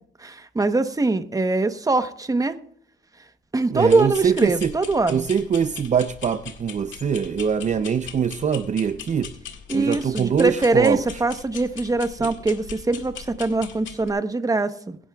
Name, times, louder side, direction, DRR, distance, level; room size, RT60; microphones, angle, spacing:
voice 1, 0.2-2.6 3.5-5.3 9.7-15.0, right 2 dB, 15° right, 10 dB, 1.0 m, -22 dB
sound 1, 3.7-14.1, left 7 dB, 70° left, 1.8 m, -40 dB
voice 2, 3.7-4.7 5.1-9.3 9.7-11.2 12.2-12.3, right 7 dB, 35° right, 11 dB, 0.6 m, -23 dB
22.5 x 11.0 x 2.4 m, 0.64 s
cardioid pair, 90°, 20 cm